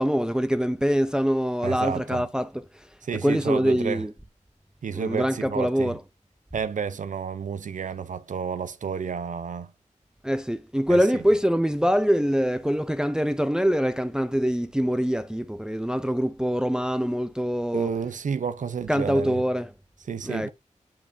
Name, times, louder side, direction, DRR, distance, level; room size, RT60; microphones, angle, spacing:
voice 1, 0.0-2.5 3.2-4.1 4.9-6.0 10.2-17.9 18.9-19.7 20.3-20.5, equal, 5° right, 0.6 m, -24 dB
voice 2, 1.6-2.3 3.0-4.1 4.8-6.0 6.5-9.7 10.9-11.2 17.7-19.4 20.0-20.5, right 6 dB, 85° right, 0.6 m, -31 dB
8.8 x 5.7 x 2.6 m
wide cardioid pair, 70°, 13 cm